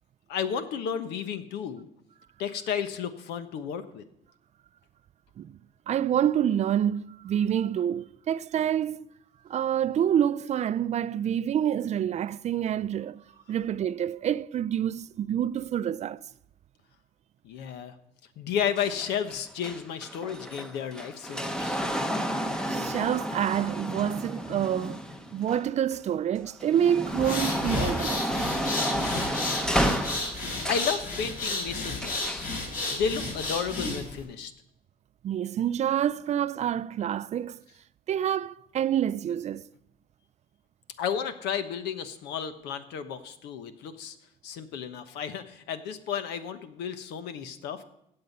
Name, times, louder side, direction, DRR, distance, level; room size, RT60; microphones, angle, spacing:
voice 1, 0.3-1.9 2.4-4.0 17.4-17.9 18.4-21.8 30.7-32.5 32.9-34.5 41.0-44.2 44.4-47.8, left 7 dB, 85° left, 1.1 m, -32 dB
voice 2, 5.9-9.1 9.5-13.2 13.5-16.2 22.7-25.0 25.3-28.3 35.2-37.6 38.1-39.7, right 10 dB, 40° right, 0.4 m, -27 dB
sound 1, 18.8-26.0 26.4-31.0 32.0-32.5 33.4-33.5, equal, 5° left, 0.9 m, -31 dB
sound 2, 27.1-34.2, left 2 dB, 55° left, 5.6 m, -32 dB
16.0 x 7.7 x 5.5 m
cardioid pair, 110°, 17 cm